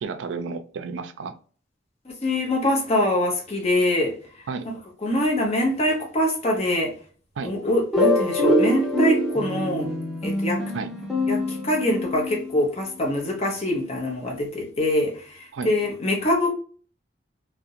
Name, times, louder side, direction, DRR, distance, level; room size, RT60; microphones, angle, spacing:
voice 1, 0.0-1.3 4.5-4.7 7.4-7.5 10.7-10.9 15.5-15.7, right 4 dB, 80° right, 0.4 m, -32 dB
voice 2, 2.2-4.1 4.6-4.7 5.0-6.9 7.4-9.9 10.2-10.6 11.3-16.5, left 1 dB, 35° left, 0.7 m, -24 dB
sound 1, 7.9-12.5, left 1 dB, ahead, 0.5 m, -24 dB
2.4 x 2.1 x 2.7 m
head